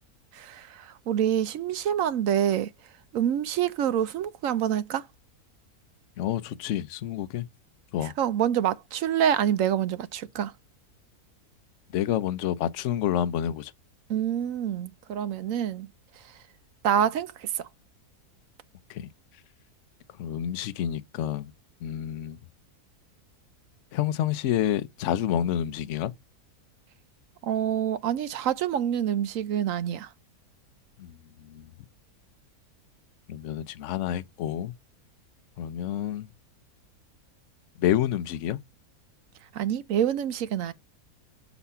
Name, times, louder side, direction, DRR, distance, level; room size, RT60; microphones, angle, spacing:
voice 1, 0.3-2.7 3.1-5.1 8.2-10.5 14.1-15.9 16.8-17.7 27.4-30.1 39.5-40.7, right 9 dB, 65° right, 0.9 m, -26 dB
voice 2, 6.2-7.5 7.9-8.1 11.9-13.7 18.9-19.1 20.2-21.5 21.8-22.4 23.9-26.1 31.0-31.7 33.3-34.7 35.6-36.3 37.8-38.6, left 11 dB, 60° left, 0.9 m, -28 dB
7.0 x 4.1 x 5.6 m
omnidirectional pair, 1.6 m